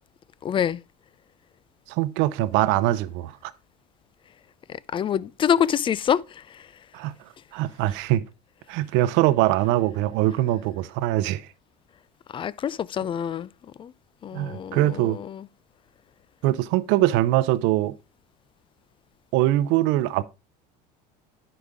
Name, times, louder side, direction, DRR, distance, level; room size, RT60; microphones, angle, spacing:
voice 1, 0.4-0.8 4.9-6.4 12.3-13.5 13.8-13.9 14.2-15.4, left 9 dB, 25° left, 0.4 m, -26 dB
voice 2, 1.9-3.5 6.9-7.2 7.5-8.2 8.7-11.5 14.3-15.2 16.4-17.9 19.3-20.2, right 15 dB, 65° right, 0.7 m, -22 dB
10.0 x 5.1 x 3.5 m
supercardioid pair, 95°, 21 cm